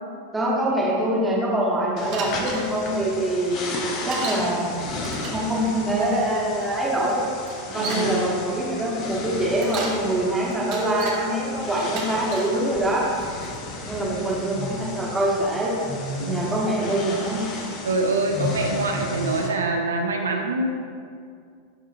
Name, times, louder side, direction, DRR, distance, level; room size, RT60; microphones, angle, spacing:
voice 1, 0.3-4.7 5.3-7.2 7.7-13.1 13.9-15.8 16.2-17.4, right 1 dB, 10° right, -5 dB, 1.4 m, -24 dB
sound 1, 2.0-19.5, left 3 dB, 35° left, 0.8 m, -34 dB
Bicycle, 2.1-2.7 4.1-4.5 5.0-5.5 6.6-6.7 7.4-8.1 9.4-10.0 10.5-11.2 11.8-12.5 13.2-13.6, right 4 dB, 40° right, 0.9 m, -34 dB
voice 2, 7.8-8.3 16.2-16.5 17.8-20.7, right 2 dB, 70° right, 3 dB, 0.4 m, -25 dB
10.5 x 3.6 x 2.6 m, 2.3 s
figure-of-eight pair, 90°, 0 cm